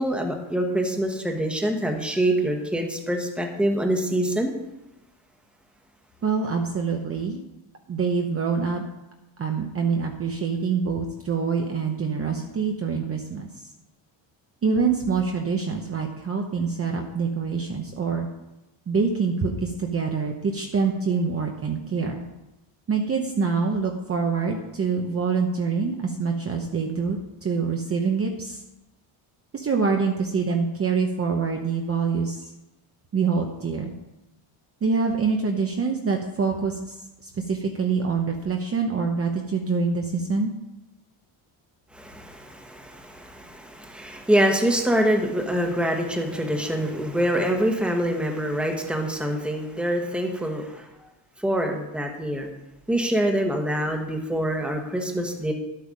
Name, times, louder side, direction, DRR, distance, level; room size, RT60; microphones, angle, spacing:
voice 1, 0.0-4.5 41.9-50.9 51.4-52.5 52.9-55.5, right 1 dB, ahead, 2 dB, 1.2 m, -25 dB
voice 2, 6.2-7.4 7.9-8.8 9.4-13.5 14.6-18.3 18.9-22.3 22.9-28.6 29.5-32.5 33.1-33.9 34.8-36.9 37.2-40.5, right 5 dB, 30° right, 2 dB, 0.9 m, -25 dB
12.5 x 8.5 x 5.3 m, 0.97 s
cardioid pair, 175°, 50 cm